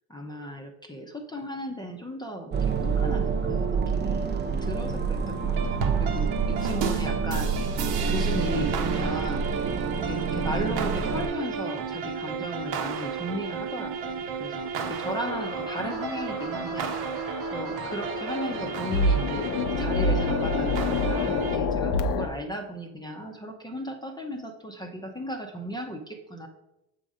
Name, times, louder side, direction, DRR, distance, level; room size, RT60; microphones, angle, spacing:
voice 1, 0.1-4.3 4.6-7.8 8.1-9.5 10.1-16.9 17.5-19.5 19.8-26.5, equal, 10° left, 3 dB, 0.7 m, -36 dB
sound 1, 2.5-11.3, right 5 dB, 25° right, 0.6 m, -28 dB
sound 2, 5.4-21.6, right 6 dB, 60° right, 1.0 m, -32 dB
sound 3, 15.1-22.3, left 3 dB, 70° left, 0.8 m, -28 dB
7.4 x 4.0 x 4.9 m, 0.90 s
supercardioid pair, 105°, 43 cm